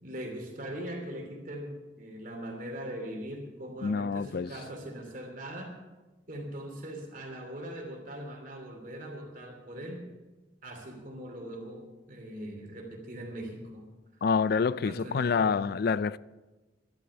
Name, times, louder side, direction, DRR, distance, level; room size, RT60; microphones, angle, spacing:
voice 1, 0.0-5.7 6.3-10.1 10.6-13.9 14.6-15.6, right 1 dB, 45° right, 2.8 m, -41 dB
voice 2, 3.8-4.5 14.2-16.2, left 5 dB, 55° left, 0.3 m, -27 dB
12.0 x 11.5 x 7.0 m
head